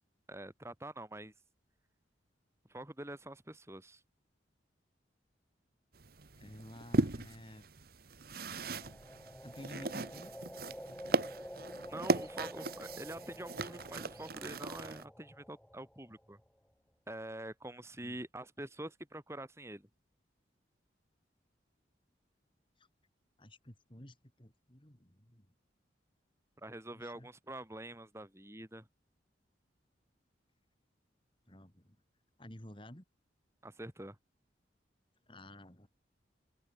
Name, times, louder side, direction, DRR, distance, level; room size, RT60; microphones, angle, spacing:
voice 1, 0.3-1.3 2.7-4.0 11.9-16.4 17.1-19.9 26.6-28.9 33.6-34.2, right 1 dB, 15° right, 3.1 m, -46 dB
sound 1, 5.9-15.0, right 2 dB, 55° right, 1.2 m, -37 dB
voice 2, 6.3-7.7 9.4-10.3 18.0-18.2 22.8-22.9 23.4-25.5 26.9-27.3 31.5-32.0 32.4-33.0 35.3-35.9, left 1 dB, 25° left, 3.3 m, -52 dB
sound 2, 8.4-16.5, equal, 5° left, 2.2 m, -49 dB
open air
head